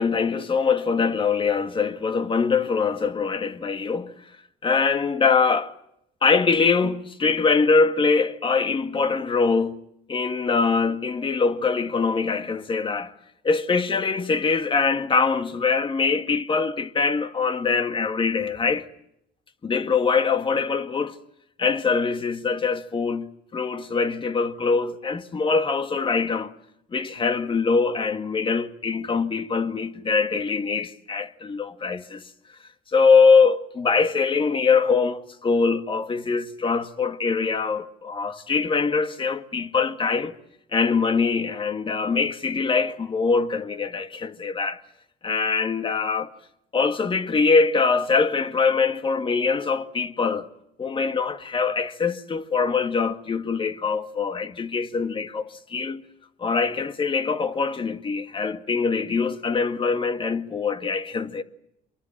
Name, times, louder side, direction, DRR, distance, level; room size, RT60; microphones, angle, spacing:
voice 1, 0.0-4.1 4.6-5.7 6.2-9.8 10.1-13.1 13.4-18.9 19.6-21.2 21.6-26.5 26.9-32.2 32.9-40.3 40.7-44.8 45.2-46.3 46.7-50.5 50.8-56.0 56.4-61.4, left 4 dB, 30° left, 1.9 m, -23 dB
25.5 x 23.0 x 7.4 m
cardioid pair, 110°, 17 cm